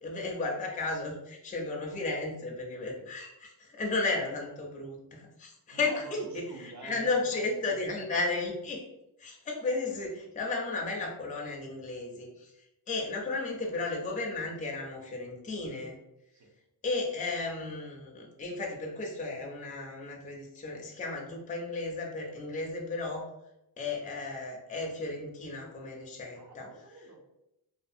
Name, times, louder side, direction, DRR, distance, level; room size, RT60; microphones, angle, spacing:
voice 1, 0.0-8.9 9.2-12.5 12.9-16.0 16.8-23.3 23.8-26.7, left 3 dB, 20° left, -1 dB, 0.4 m, -34 dB
voice 2, 2.7-3.1 4.6-4.7 5.7-8.0 16.3-16.5 26.4-27.2, right 3 dB, 45° right, 1 dB, 0.5 m, -48 dB
2.5 x 2.4 x 2.6 m, 0.88 s
wide cardioid pair, 160°, 41 cm